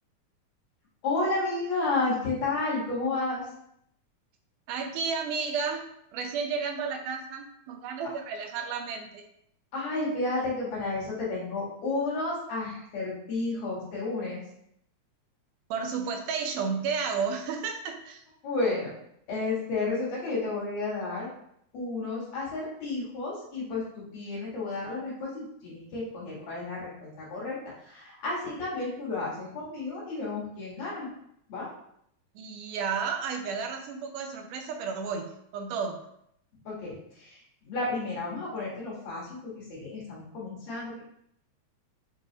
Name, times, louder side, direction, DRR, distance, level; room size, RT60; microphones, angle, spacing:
voice 1, 1.0-3.5 9.7-14.4 18.4-18.9 19.3-21.3 21.7-27.6 27.8-31.1 31.5-31.7 36.7-37.4 37.6-41.0, left 3 dB, 65° left, -7 dB, 2.7 m, -32 dB
voice 2, 4.7-5.8 6.1-9.2 15.7-18.2 32.4-35.3 35.5-36.0, right 5 dB, 85° right, 4 dB, 2.1 m, -32 dB
6.1 x 2.3 x 2.7 m, 0.73 s
omnidirectional pair, 3.6 m